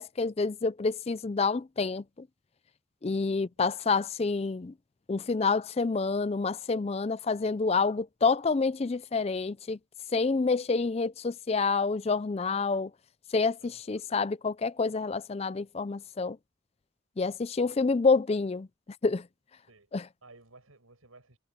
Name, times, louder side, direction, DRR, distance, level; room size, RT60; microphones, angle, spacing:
voice 1, 0.0-2.3 3.0-4.7 5.1-9.8 10.1-12.9 13.3-16.4 17.2-18.7 19.0-19.3 19.9-20.0, left 4 dB, 30° left, 0.4 m, -28 dB
voice 2, 13.6-14.1 19.7-19.9 20.2-21.4, right 3 dB, 90° right, 7.9 m, -56 dB
head